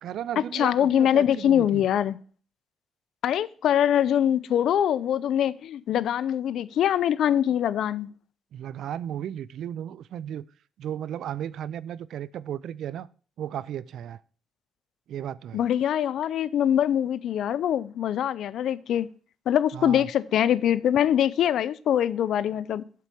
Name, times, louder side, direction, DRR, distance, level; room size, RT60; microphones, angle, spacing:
voice 1, 0.0-1.9 8.5-10.4 10.8-13.1 13.4-14.2 15.1-15.6 19.7-20.1, right 10 dB, 75° right, 0.4 m, -35 dB
voice 2, 0.5-2.2 3.2-8.1 15.5-19.1 19.5-22.8, left 10 dB, 75° left, 0.4 m, -23 dB
7.5 x 4.6 x 6.8 m
cardioid pair, 90°, 0 cm